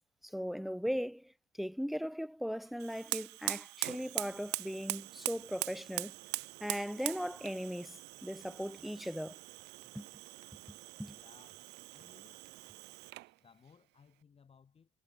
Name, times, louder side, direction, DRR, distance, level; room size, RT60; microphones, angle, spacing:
voice 1, 0.2-1.3 1.6-6.1 6.6-9.4 9.9-10.1 11.0-11.2, equal, ahead, 1.0 m, -38 dB
Fire, 2.8-13.3, right 21 dB, 80° right, 0.5 m, -42 dB
voice 2, 11.1-12.5 13.4-14.9, left 6 dB, 35° left, 4.7 m, -63 dB
cardioid pair, 110°, 17 cm